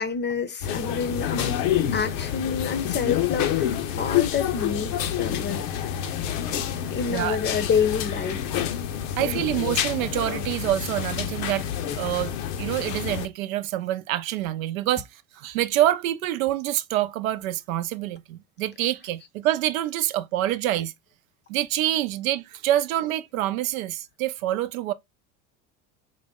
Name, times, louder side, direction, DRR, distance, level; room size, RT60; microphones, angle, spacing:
voice 1, 0.0-1.6 1.9-5.6 6.9-8.4 9.2-9.4, left 6 dB, 25° left, 0.6 m, -28 dB
sound 1, 0.6-13.3, left 10 dB, 70° left, 0.8 m, -28 dB
voice 2, 9.2-11.7 12.0-20.9 21.5-24.9, right 13 dB, 80° right, 0.6 m, -26 dB
4.0 x 2.1 x 3.5 m
hypercardioid pair, 85°, 41 cm